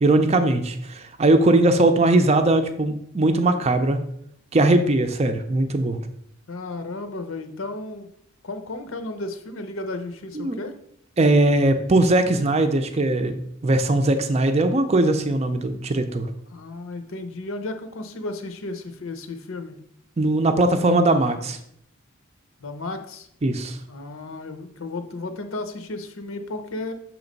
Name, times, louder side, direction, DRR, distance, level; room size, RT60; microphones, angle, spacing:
voice 1, 0.0-4.0 4.5-6.0 10.3-10.6 11.2-13.3 13.6-16.3 20.2-21.6 23.4-23.8, right 2 dB, 30° right, 7 dB, 0.5 m, -20 dB
voice 2, 6.5-8.1 8.4-10.7 16.5-19.8 22.6-23.3 23.9-26.9, left 2 dB, 80° left, 8 dB, 0.8 m, -33 dB
6.9 x 3.1 x 5.2 m, 0.70 s
head